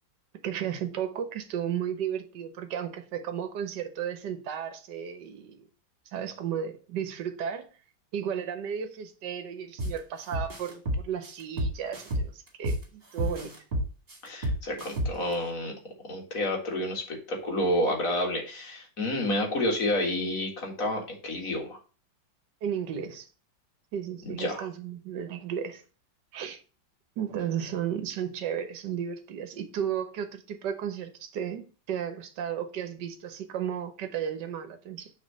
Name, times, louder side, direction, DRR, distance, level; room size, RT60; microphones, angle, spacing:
voice 1, 0.4-5.6 6.1-7.7 8.1-13.5 22.6-23.3 23.9-25.8 26.3-26.6 27.2-35.1, right 8 dB, 65° right, 1.6 m, -34 dB
sound 1, 9.8-10.0 10.3-12.8 13.2-15.3, equal, 30° right, 2.0 m, -30 dB
voice 2, 14.2-15.7 16.0-21.8 24.2-24.7, left 1 dB, 45° left, 2.2 m, -29 dB
6.5 x 3.8 x 6.2 m
omnidirectional pair, 2.1 m